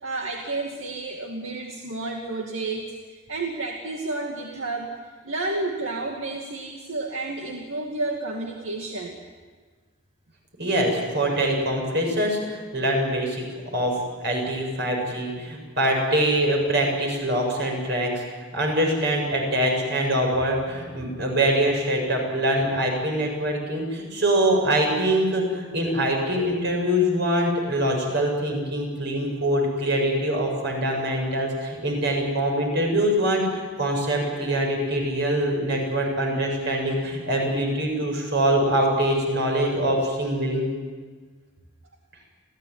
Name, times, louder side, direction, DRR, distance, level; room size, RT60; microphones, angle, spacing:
voice 1, 0.0-9.2, right 2 dB, 75° right, 1 dB, 2.4 m, -31 dB
voice 2, 10.6-18.2 18.5-40.7, right 1 dB, 55° right, 1 dB, 7.6 m, -24 dB
28.5 x 16.0 x 9.8 m, 1.5 s
head